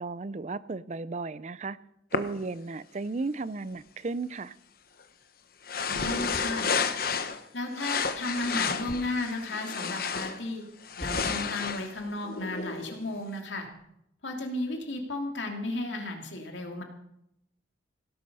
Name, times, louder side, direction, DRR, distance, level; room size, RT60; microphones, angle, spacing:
voice 1, 0.0-1.8 2.1-4.6, right 3 dB, 40° right, 17 dB, 0.5 m, -34 dB
sound 1, 2.1-2.2 5.7-7.4 7.7-10.4 10.8-13.0, left 5 dB, 55° left, 1.0 m, -31 dB
voice 2, 5.9-6.7 7.5-10.6 11.0-13.7 14.2-16.8, left 2 dB, 85° left, 2 dB, 2.9 m, -34 dB
sound 2, 11.0-11.5 13.5-13.8, equal, 20° left, 7.3 m, -43 dB
17.0 x 11.5 x 5.5 m, 0.81 s
head